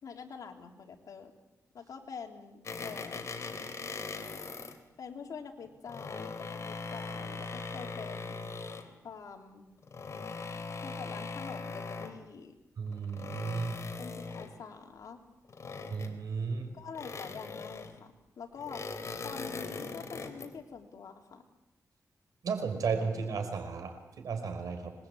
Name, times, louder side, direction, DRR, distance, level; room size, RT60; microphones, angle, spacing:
voice 1, 0.0-1.3 1.7-3.2 5.0-8.4 9.0-9.7 10.8-12.6 14.0-15.2 16.7-18.8 19.2-21.4, left 6 dB, 80° left, 3 dB, 3.3 m, -46 dB
sound 1, 2.6-4.8 5.7-8.9 9.8-12.2 12.9-14.6 15.5-16.4 16.9-18.0 18.6-20.5, left 4 dB, 55° left, 3.4 m, -40 dB
voice 2, 12.8-13.8 15.9-16.7 22.4-24.9, right 5 dB, 80° right, 7 dB, 5.3 m, -34 dB
26.0 x 21.5 x 8.5 m, 0.97 s
cardioid pair, 90°, 6 cm